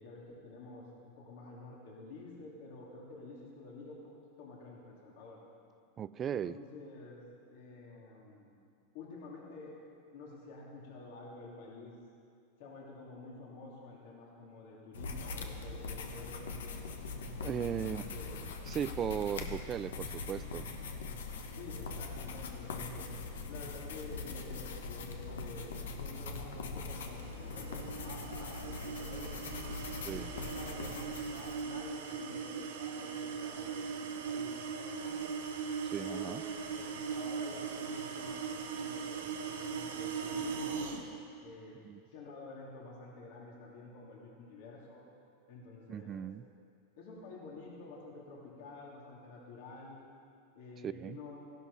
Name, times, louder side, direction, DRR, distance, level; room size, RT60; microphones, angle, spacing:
voice 1, 0.0-4.0 4.4-5.4 6.2-7.2 7.5-8.5 8.9-9.8 10.1-11.9 12.6-16.9 17.6-18.4 21.5-23.1 23.5-29.8 30.2-35.3 36.0-40.8 41.4-41.8 42.1-45.0 45.5-46.2 47.0-50.0 50.5-51.4, left 3 dB, 65° left, -3 dB, 3.3 m, -49 dB
voice 2, 6.0-6.6 17.4-18.0 18.7-20.7 30.0-30.3 35.8-36.4 41.8-42.0 45.9-46.4 50.8-51.2, right 9 dB, 30° right, 17 dB, 0.4 m, -37 dB
sound 1, 14.9-31.6, left 4 dB, 90° left, 1.3 m, -42 dB
sound 2, 27.1-41.0, right 6 dB, 85° right, 1.6 m, -39 dB
15.0 x 12.0 x 5.7 m, 2.4 s
supercardioid pair, 125°, 0 cm